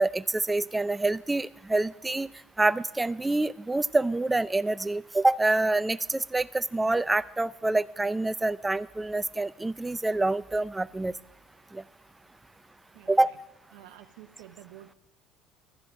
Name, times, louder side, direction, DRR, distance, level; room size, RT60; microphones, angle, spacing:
voice 1, 0.0-2.3 2.6-11.1 11.7-11.8 13.1-13.3, right 2 dB, 15° right, 16 dB, 0.5 m, -26 dB
voice 2, 12.9-13.3 13.7-14.9, right 13 dB, 80° right, 5 dB, 0.7 m, -50 dB
13.5 x 5.9 x 8.7 m, 0.94 s
hypercardioid pair, 75°, 0 cm